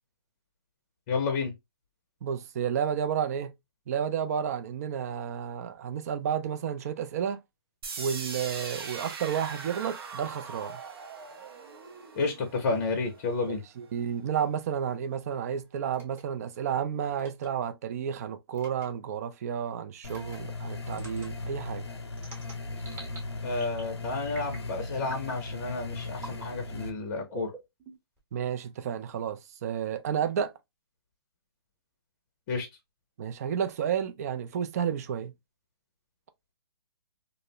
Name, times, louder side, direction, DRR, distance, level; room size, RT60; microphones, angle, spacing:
voice 1, 1.1-1.5 12.1-13.6 23.4-27.5 32.5-32.7, left 3 dB, 35° left, 0.6 m, -31 dB
voice 2, 2.2-3.5 3.9-7.4 8.0-10.8 13.5-21.9 28.3-30.5 33.2-35.3, right 8 dB, 40° right, 0.3 m, -31 dB
sound 1, 7.8-13.8, right 5 dB, 65° right, 0.7 m, -41 dB
sound 2, 15.9-16.2 17.2-17.5 18.5-18.9 20.0-20.4 20.9-21.3 22.2-23.2 23.5-23.9 24.3-24.7 25.0-25.4 26.2-26.5 27.3-28.2, right 2 dB, 15° right, 0.9 m, -45 dB
sound 3, 20.0-26.9, left 2 dB, 90° left, 0.7 m, -38 dB
2.4 x 2.0 x 2.7 m
hypercardioid pair, 150°, 14 cm